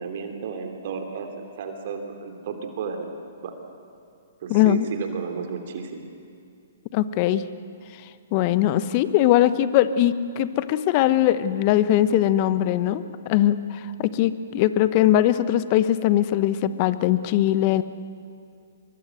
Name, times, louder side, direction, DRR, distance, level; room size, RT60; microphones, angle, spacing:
voice 1, 0.0-3.1 3.4-3.5 4.4-6.1, right 5 dB, 55° right, 5 dB, 3.0 m, -33 dB
voice 2, 4.5-4.9 6.9-7.4 8.3-13.0 13.3-17.8, left 12 dB, 40° left, 14 dB, 1.1 m, -21 dB
24.0 x 23.0 x 8.0 m, 2.5 s
hypercardioid pair, 125°, 0 cm